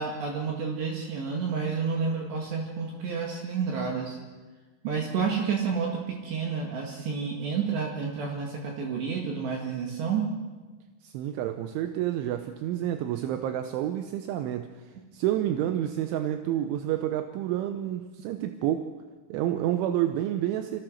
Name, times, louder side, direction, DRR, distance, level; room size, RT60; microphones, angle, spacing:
voice 1, 0.0-4.2 4.8-10.3, right 5 dB, 65° right, 0 dB, 4.0 m, -30 dB
voice 2, 11.0-14.7 15.1-18.9 19.3-20.8, right 12 dB, 80° right, 7 dB, 3.2 m, -29 dB
25.0 x 16.5 x 6.4 m, 1.3 s
omnidirectional pair, 5.6 m